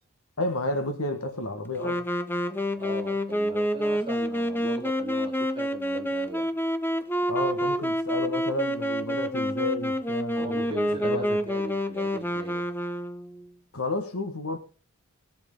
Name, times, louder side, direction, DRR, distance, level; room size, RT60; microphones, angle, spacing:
voice 1, 0.4-2.1 7.3-11.4 13.7-14.6, left 2 dB, 70° left, 1.7 m, -31 dB
Wind instrument woodwind instrument, 1.8-13.5, equal, 10° left, 0.6 m, -28 dB
voice 2, 2.8-6.5 10.4-12.7, right 2 dB, 20° right, 2.5 m, -39 dB
19.0 x 7.3 x 3.9 m
head